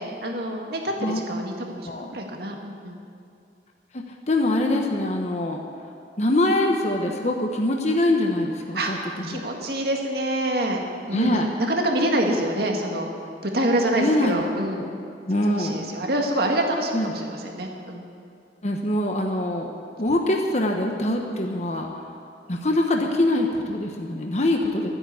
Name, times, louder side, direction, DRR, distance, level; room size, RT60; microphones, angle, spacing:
voice 1, 0.0-3.0 8.7-8.9 9.2-10.8 11.1-13.1 13.4-14.9 15.5-18.1, right 1 dB, 60° right, 1 dB, 1.9 m, -26 dB
voice 2, 4.3-5.6 6.2-9.4 11.1-11.5 13.9-14.7 15.3-15.8 16.9-17.2 18.6-19.7 20.0-21.9 22.5-24.9, left 1 dB, 40° left, 2 dB, 1.1 m, -23 dB
13.0 x 9.9 x 8.4 m, 2.5 s
head